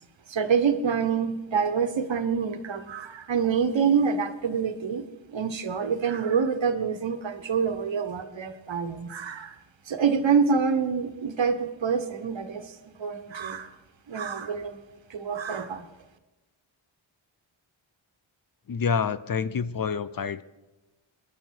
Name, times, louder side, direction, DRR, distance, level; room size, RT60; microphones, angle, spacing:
voice 1, 0.3-5.0 5.3-9.5 9.9-12.7 13.0-13.7 14.1-14.8 15.1-15.8, right 6 dB, 65° right, 9 dB, 1.4 m, -26 dB
voice 2, 18.7-20.4, left 6 dB, 45° left, 15 dB, 0.6 m, -27 dB
23.5 x 11.0 x 4.5 m, 1.1 s
wide cardioid pair, 95°, 48 cm